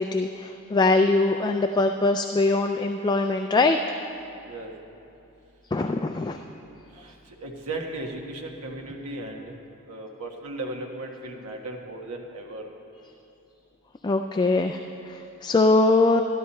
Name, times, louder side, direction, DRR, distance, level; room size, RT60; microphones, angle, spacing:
voice 1, 0.0-3.8 5.7-6.4 14.0-16.2, left 3 dB, 20° left, 6 dB, 0.3 m, -22 dB
voice 2, 7.0-9.5 9.9-12.7, right 2 dB, 85° right, 1 dB, 1.4 m, -36 dB
13.0 x 12.5 x 4.3 m, 2.8 s
head